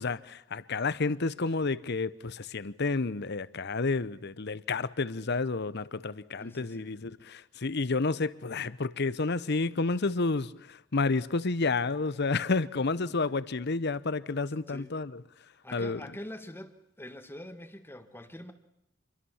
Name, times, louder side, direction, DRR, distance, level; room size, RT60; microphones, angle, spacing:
voice 1, 0.0-10.5 10.9-15.1 15.7-16.0, left 3 dB, 60° left, 0.9 m, -30 dB
voice 2, 6.4-7.0 13.1-13.3 14.7-15.0 15.6-18.5, left 1 dB, 10° left, 1.7 m, -45 dB
27.5 x 22.5 x 7.3 m
head